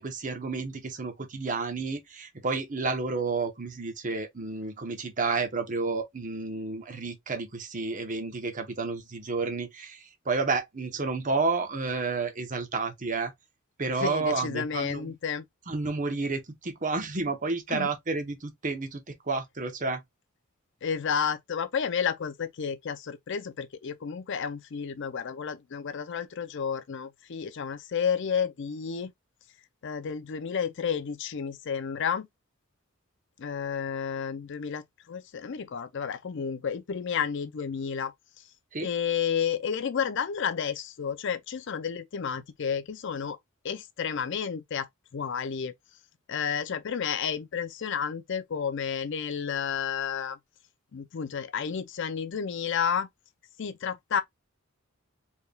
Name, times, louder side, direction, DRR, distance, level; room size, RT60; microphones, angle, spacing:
voice 1, 0.0-13.3 13.8-15.1 15.7-20.0 38.7-38.9, right 4 dB, 35° right, 0.9 m, -31 dB
voice 2, 14.0-15.4 17.7-17.9 20.8-29.1 29.8-32.3 33.4-38.1 38.8-43.4 43.6-45.7 46.3-50.4 50.9-53.1 53.6-54.2, left 7 dB, 60° left, 0.5 m, -31 dB
4.4 x 3.5 x 2.2 m
head